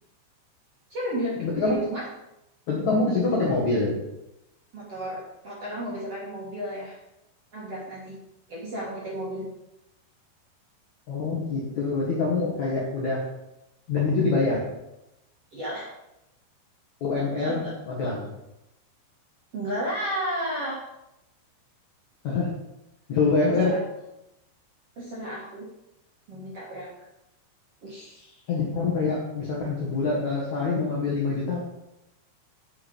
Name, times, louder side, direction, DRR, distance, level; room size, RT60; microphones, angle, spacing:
voice 1, 0.9-2.0 4.7-7.0 7.5-8.2 8.5-9.5 15.5-15.9 17.4-17.7 19.5-20.8 23.6-23.7 24.9-25.7 26.3-26.9 27.8-28.4, equal, 60° right, -6 dB, 1.5 m, -33 dB
voice 2, 1.4-1.8 2.7-3.9 11.1-13.2 13.9-14.7 17.0-18.3 22.2-22.5 23.1-23.8 28.5-31.7, left 3 dB, 65° left, -5 dB, 1.8 m, -25 dB
7.8 x 7.3 x 5.3 m, 0.90 s
omnidirectional pair, 5.7 m